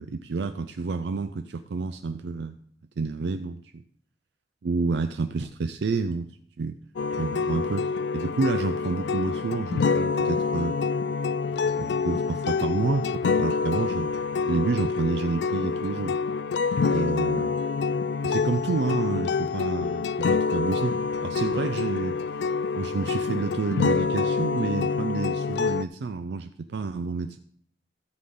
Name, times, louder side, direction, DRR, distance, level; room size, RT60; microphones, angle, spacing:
voice 1, 0.0-2.6 3.0-3.8 4.6-6.3 6.6-6.8 7.2-10.8 11.7-14.1 14.5-16.2 16.9-17.6 18.2-22.2 22.7-27.4, right 4 dB, 65° right, 9 dB, 0.4 m, -29 dB
sound 1, 7.0-25.8, left 5 dB, 65° left, 0.3 m, -26 dB
13.0 x 7.7 x 3.7 m, 0.63 s
head